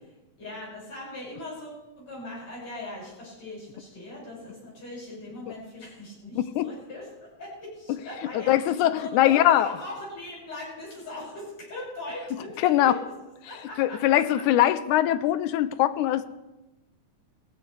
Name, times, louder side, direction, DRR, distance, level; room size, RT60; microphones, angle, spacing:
voice 1, 0.4-7.1 7.4-13.1 13.5-14.4, left 2 dB, 60° left, -6 dB, 7.3 m, -40 dB
voice 2, 6.4-6.7 8.3-9.7 12.6-12.9 13.8-16.3, left 13 dB, 85° left, 14 dB, 2.1 m, -22 dB
18.5 x 16.0 x 3.3 m, 1.0 s
omnidirectional pair, 3.5 m